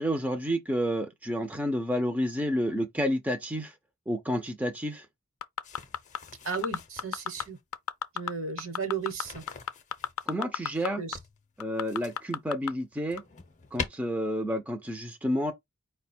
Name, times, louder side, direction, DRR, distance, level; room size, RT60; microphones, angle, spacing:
voice 1, 0.0-3.7 4.1-5.1 10.3-11.0 11.6-13.2 13.7-15.5, equal, 5° right, 0.5 m, -30 dB
sound 1, 5.4-6.2 6.5-7.4 7.7-8.3 8.6-10.9 11.1-11.2 11.6-12.7 13.2-13.3, left 8 dB, 75° left, 0.5 m, -31 dB
sound 2, 5.6-7.6 9.0-10.3 11.1-12.4 12.8-13.9, left 5 dB, 35° left, 0.6 m, -43 dB
voice 2, 6.4-7.6 8.1-9.4 11.0-11.2, right 5 dB, 60° right, 1.1 m, -34 dB
4.9 x 2.2 x 4.3 m
head